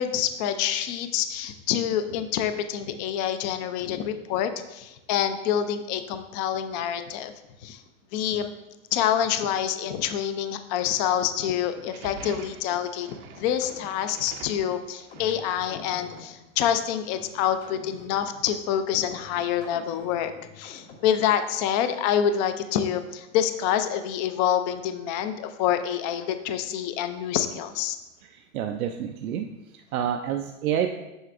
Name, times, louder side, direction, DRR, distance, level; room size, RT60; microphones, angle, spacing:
voice 1, 0.0-7.3 7.6-7.8 8.1-8.5 8.9-28.0, left 9 dB, 35° left, 9 dB, 0.4 m, -27 dB
sound 1, 11.8-16.1, right 6 dB, 35° right, 0.5 m, -46 dB
sound 2, 13.1-21.3, left 4 dB, 75° left, 1.6 m, -48 dB
voice 2, 28.3-29.5 29.7-30.9, right 9 dB, 85° right, 5 dB, 0.5 m, -28 dB
7.9 x 5.8 x 2.5 m, 0.99 s
hypercardioid pair, 120°, 41 cm